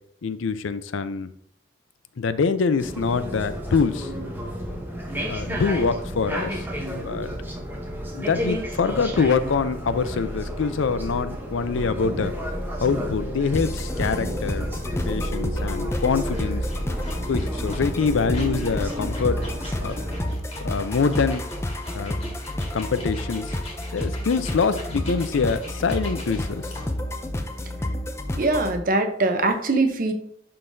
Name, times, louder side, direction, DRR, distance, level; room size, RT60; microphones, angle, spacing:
voice 1, 0.2-1.3 2.2-4.1 5.2-6.7 7.0-7.3 8.1-12.3 12.8-14.7 15.0-16.6 17.3-19.4 19.8-20.0 20.6-21.5 21.9-22.2 22.7-23.5 23.9-26.7, left 5 dB, 80° left, 13 dB, 0.5 m, -25 dB
sound 1, 2.8-20.3, equal, 10° right, 0.9 m, -31 dB
sound 2, 13.5-28.8, left 1 dB, 15° left, 0.4 m, -30 dB
sound 3, 15.9-27.0, left 1 dB, 30° left, 1.9 m, -42 dB
voice 2, 28.4-30.1, right 2 dB, 45° right, 6 dB, 0.7 m, -22 dB
11.0 x 3.8 x 2.7 m, 0.68 s
head